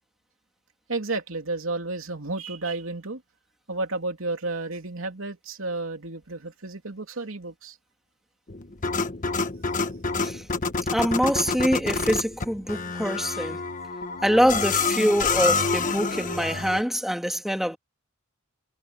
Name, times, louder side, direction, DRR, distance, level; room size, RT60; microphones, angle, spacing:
voice 1, 0.9-3.2 3.7-7.8, right 3 dB, 85° right, 3.0 m, -32 dB
sound 1, 8.5-16.8, left 4 dB, 40° left, 1.3 m, -28 dB
voice 2, 10.9-13.6 14.2-17.8, equal, ahead, 2.3 m, -24 dB
head